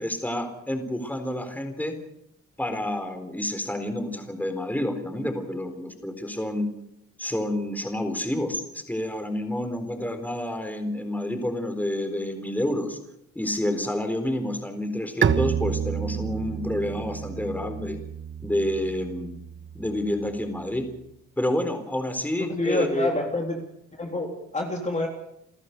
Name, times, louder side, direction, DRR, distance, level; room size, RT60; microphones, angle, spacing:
voice 1, 0.0-1.9 2.6-6.7 7.2-13.0 13.4-18.0 18.4-19.3 19.7-20.9 21.4-23.1, left 1 dB, 5° left, 7 dB, 4.1 m, -29 dB
Bowed string instrument, 15.2-20.8, right 8 dB, 40° right, 1.3 m, -30 dB
voice 2, 22.4-23.6 23.9-25.1, left 1 dB, 25° left, 1 dB, 3.4 m, -27 dB
29.5 x 14.0 x 6.8 m, 0.78 s
cardioid pair, 90°, 30 cm